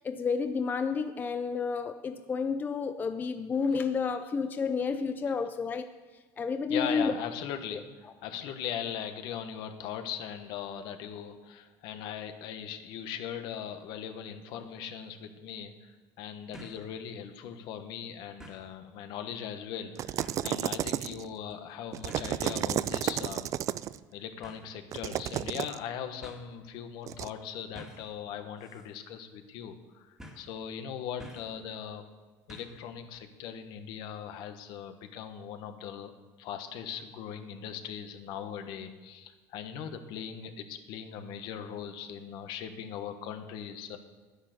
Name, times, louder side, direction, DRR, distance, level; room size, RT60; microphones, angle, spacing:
voice 1, 0.0-5.9 6.4-7.1 7.7-7.8, left 5 dB, 25° left, 8 dB, 0.5 m, -30 dB
voice 2, 6.7-15.9 16.2-23.5 24.1-32.0 32.5-36.1 36.4-44.0, left 8 dB, 65° left, 8 dB, 1.3 m, -39 dB
sound 1, 14.6-14.7 16.5-16.9 17.3-17.4 18.4-18.7 20.2-20.5 21.5-21.7 22.1-22.8 24.4-24.7 25.7-25.8 26.2-26.4 27.7-28.1 28.6-28.9 29.1-29.2 30.2-30.5 31.2-31.6 32.5-32.8 33.1-33.2, equal, 5° right, 1.9 m, -49 dB
sound 2, 20.0-21.3 21.9-24.0 24.9-25.8 27.1-27.3, right 12 dB, 40° right, 0.3 m, -32 dB
10.5 x 9.9 x 6.6 m, 1.3 s
cardioid pair, 130°, 8 cm